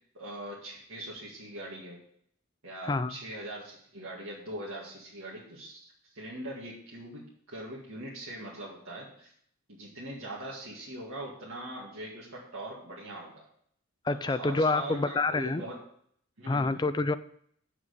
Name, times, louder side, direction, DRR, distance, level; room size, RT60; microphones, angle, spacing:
voice 1, 0.1-2.0 2.6-9.3 9.7-13.4 14.1-15.8 16.4-16.8, right 1 dB, 70° right, -6 dB, 2.0 m, -42 dB
voice 2, 14.0-15.6 16.5-17.2, left 3 dB, 20° left, 11 dB, 0.3 m, -27 dB
7.9 x 6.1 x 6.5 m, 0.64 s
head